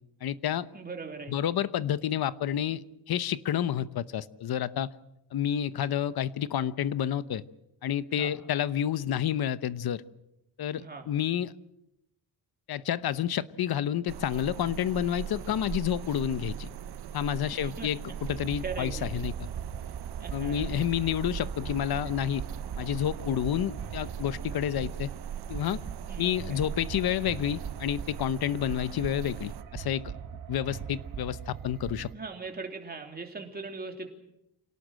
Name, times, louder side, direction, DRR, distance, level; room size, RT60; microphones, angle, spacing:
voice 1, 0.2-0.7 1.3-4.9 5.3-7.4 7.8-10.0 10.6-11.5 12.7-16.7 17.1-18.0 18.3-19.3 20.3-22.4 22.8-25.1 25.5-25.8 26.2-30.1 30.5-32.1, left 10 dB, 70° left, 15 dB, 1.0 m, -29 dB
voice 2, 0.7-1.5 8.1-8.3 10.8-11.1 17.5-18.2 18.6-19.1 20.2-20.8 26.1-26.6 32.1-34.1, right 4 dB, 25° right, 3 dB, 3.2 m, -40 dB
sound 1, 14.1-29.6, right 8 dB, 90° right, 1.2 m, -40 dB
sound 2, 18.3-32.1, right 8 dB, 60° right, 1.5 m, -41 dB
27.5 x 18.0 x 7.7 m, 0.87 s
wide cardioid pair, 160°, 38 cm